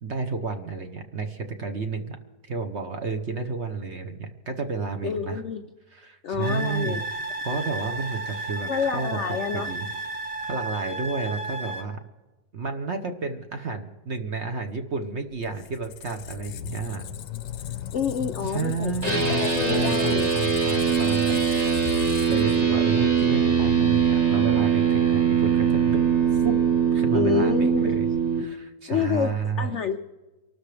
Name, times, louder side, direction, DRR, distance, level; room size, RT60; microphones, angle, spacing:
voice 1, 0.0-2.2 2.4-5.4 5.9-7.0 7.4-9.9 10.4-12.0 12.5-17.1 18.4-21.4 22.3-26.0 26.3-26.6 26.9-28.1 28.4-29.8, right 4 dB, 45° right, 6 dB, 1.0 m, -31 dB
voice 2, 5.0-5.6 6.2-7.0 8.7-9.7 17.9-20.3 27.1-27.9 28.9-30.0, left 7 dB, 75° left, 8 dB, 0.6 m, -28 dB
sound 1, 6.4-11.8, right 2 dB, 65° right, 1.8 m, -33 dB
Squeak, 15.3-23.0, left 10 dB, 90° left, 1.4 m, -36 dB
sound 2, 19.0-28.4, right 7 dB, 25° right, 1.3 m, -22 dB
24.5 x 13.0 x 3.3 m, 1.2 s
omnidirectional pair, 1.9 m